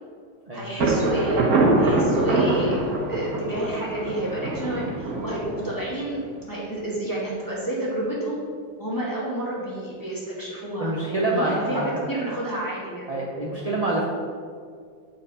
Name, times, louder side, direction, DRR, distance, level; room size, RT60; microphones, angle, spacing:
voice 1, 0.5-1.5 1.8-2.8 3.1-6.2 6.5-8.4 8.8-13.1 13.5-13.7, right 1 dB, 10° left, -6 dB, 1.8 m, -30 dB
Thunder, 0.8-6.5, right 2 dB, 60° right, 1.5 m, -24 dB
voice 2, 10.8-12.1 13.1-14.0, right 2 dB, 40° right, -4 dB, 0.5 m, -26 dB
8.0 x 4.6 x 4.9 m, 2.1 s
omnidirectional pair, 1.9 m